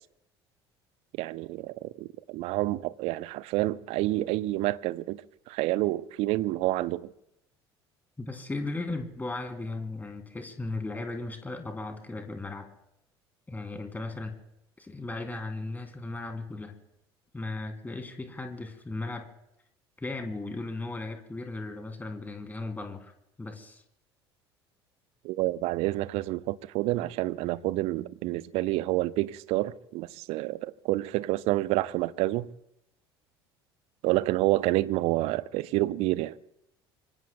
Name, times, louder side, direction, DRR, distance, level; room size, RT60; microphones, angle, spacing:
voice 1, 1.1-7.1 25.2-32.5 34.0-36.4, right 17 dB, 50° right, 0.6 m, -28 dB
voice 2, 8.2-12.7 13.5-14.4 14.8-16.7 17.3-19.3 20.0-23.1 23.4-23.8, left 2 dB, 15° left, 3.0 m, -36 dB
26.0 x 25.0 x 2.2 m
figure-of-eight pair, 60°, 13 cm